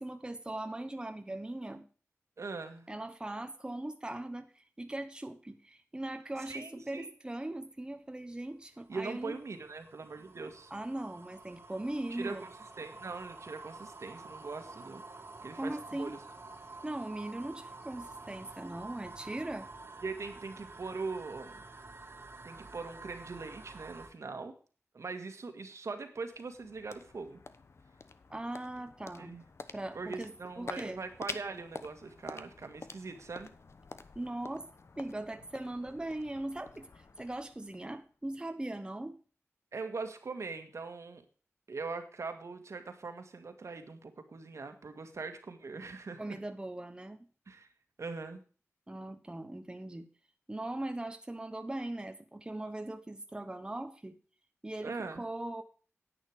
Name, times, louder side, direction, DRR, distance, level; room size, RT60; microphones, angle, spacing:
voice 1, 0.0-1.9 2.9-9.4 10.7-12.4 15.6-16.2 16.8-19.7 28.3-29.3 29.7-31.0 34.1-34.7 35.0-39.2 46.2-47.3 48.9-50.1 50.5-54.2 54.6-55.6, right 1 dB, 15° right, 7 dB, 1.0 m, -40 dB
voice 2, 2.4-2.9 6.4-7.1 8.9-10.7 12.1-12.5 12.8-15.0 15.4-16.2 20.0-21.6 22.4-24.5 24.9-27.4 29.2-29.4 29.9-33.5 39.7-41.2 41.7-46.2 47.5-47.7 48.0-48.4 54.8-55.2, right 4 dB, 70° right, 7 dB, 1.8 m, -41 dB
sound 1, 8.5-24.1, right 3 dB, 50° right, 2.0 m, -49 dB
sound 2, 26.2-38.3, left 4 dB, 60° left, 1.0 m, -49 dB
10.5 x 9.0 x 4.9 m, 0.39 s
wide cardioid pair, 95°, 5 cm